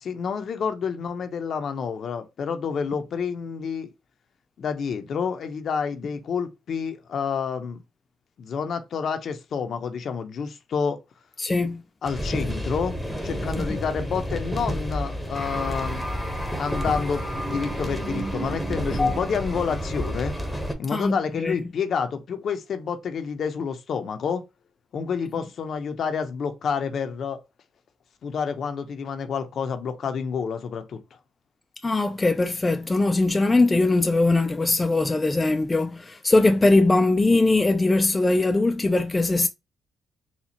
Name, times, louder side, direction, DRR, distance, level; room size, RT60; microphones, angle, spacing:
voice 1, 0.0-3.9 4.6-7.8 8.4-11.0 12.0-13.0 13.2-16.1 16.6-20.3 20.8-24.4 24.9-27.4 28.2-31.0, left 6 dB, 60° left, 0.7 m, -29 dB
voice 2, 11.4-11.8 19.0-19.1 20.9-21.6 31.8-39.5, left 2 dB, 20° left, 0.4 m, -21 dB
sound 1, 12.0-20.7, equal, 5° left, 0.9 m, -30 dB
4.3 x 2.3 x 2.8 m
cardioid pair, 90°, 0 cm